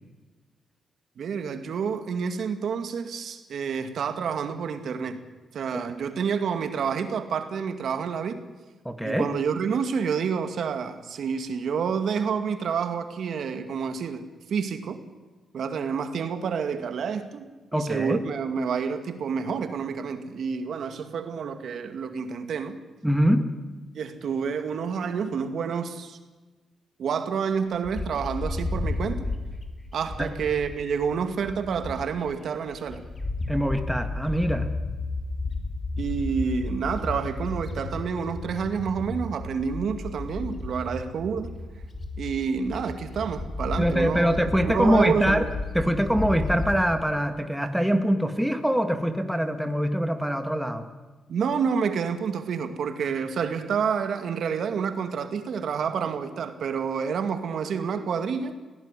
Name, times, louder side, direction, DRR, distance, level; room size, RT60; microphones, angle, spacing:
voice 1, 1.2-5.2 5.5-8.4 9.0-15.0 15.5-17.5 17.7-22.8 24.0-26.2 27.0-29.3 29.9-33.0 36.0-41.5 42.2-44.3 44.6-45.5 51.3-58.6, right 6 dB, 65° right, 8 dB, 2.1 m, -28 dB
voice 2, 8.8-9.3 17.7-18.2 23.0-23.5 30.2-30.3 33.5-34.7 43.8-45.5 45.7-50.8, equal, ahead, 6 dB, 1.9 m, -24 dB
Bird, 27.8-32.3 32.7-46.9, left 3 dB, 25° left, 3.2 m, -33 dB
19.5 x 17.5 x 9.9 m, 1.3 s
cardioid pair, 120°, 0 cm